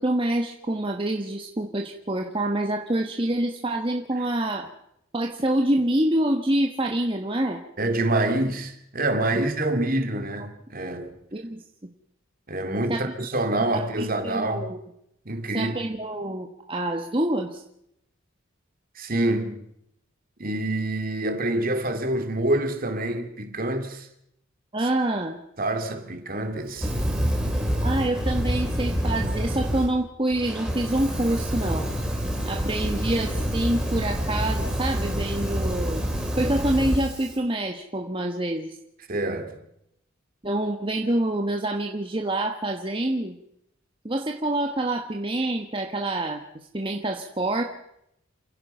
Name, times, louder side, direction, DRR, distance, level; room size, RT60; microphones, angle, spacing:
voice 1, 0.0-4.7 5.1-7.6 9.3-9.4 11.3-11.9 12.9-13.1 13.7-14.8 15.5-17.6 24.7-25.4 27.8-31.9 32.5-36.0 36.4-38.8 40.4-43.4 44.0-47.6, right 1 dB, 25° right, 1.3 m, -26 dB
voice 2, 7.8-11.2 12.5-14.7 15.3-15.7 19.0-19.7 20.4-24.1 25.6-26.9 39.1-39.6, right 1 dB, 45° right, 2.5 m, -26 dB
Fire, 26.7-29.9 30.3-37.3, equal, 5° right, 3.7 m, -27 dB
29.0 x 16.0 x 5.5 m
head